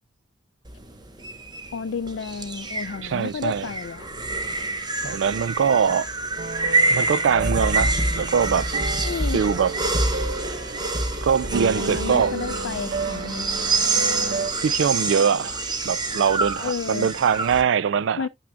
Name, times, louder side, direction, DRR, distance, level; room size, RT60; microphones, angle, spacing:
sound 1, 0.7-17.6, right 2 dB, 25° right, 1.0 m, -27 dB
voice 1, 1.7-4.1 9.0-9.4 11.8-13.9 16.6-17.1 18.1-18.3, left 5 dB, 70° left, 0.4 m, -31 dB
voice 2, 3.0-3.7 5.0-6.1 6.9-8.7 9.3-9.7 11.2-12.3 14.6-18.2, right 7 dB, 75° right, 0.4 m, -22 dB
sound 2, 6.4-14.5, right 3 dB, 55° right, 0.9 m, -32 dB
9.9 x 6.0 x 2.3 m
head